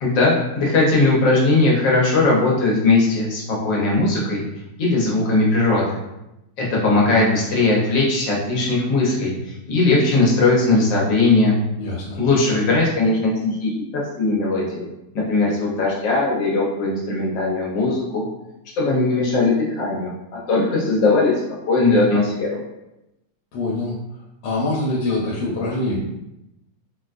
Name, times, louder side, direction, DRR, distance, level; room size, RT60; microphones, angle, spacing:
voice 1, 0.0-4.4 4.8-6.0 6.6-11.6 12.1-14.8 15.1-18.2 18.8-21.3 21.7-22.6, left 2 dB, 65° left, -4 dB, 1.4 m, -19 dB
voice 2, 11.8-12.2 23.5-24.0 24.4-26.0, left 2 dB, 85° left, -4 dB, 1.5 m, -24 dB
4.0 x 2.2 x 2.4 m, 0.91 s
omnidirectional pair, 2.3 m